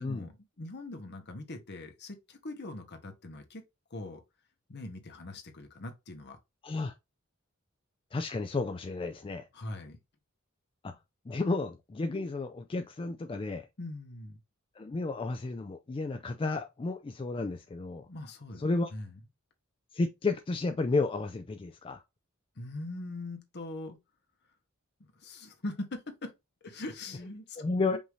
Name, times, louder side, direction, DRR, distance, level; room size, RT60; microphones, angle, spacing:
voice 1, 0.0-3.6 3.9-4.2 4.7-6.4 9.5-10.0 13.8-14.4 18.1-18.6 18.9-19.2 22.5-24.0 25.0-26.3 26.6-27.6 27.9-28.0, left 2 dB, 55° left, 1.1 m, -42 dB
voice 2, 6.6-6.9 8.1-9.5 10.8-10.9 11.3-13.7 14.8-18.1 18.6-18.9 19.9-22.0 27.6-28.0, left 3 dB, 25° left, 0.3 m, -32 dB
5.4 x 2.7 x 3.1 m
head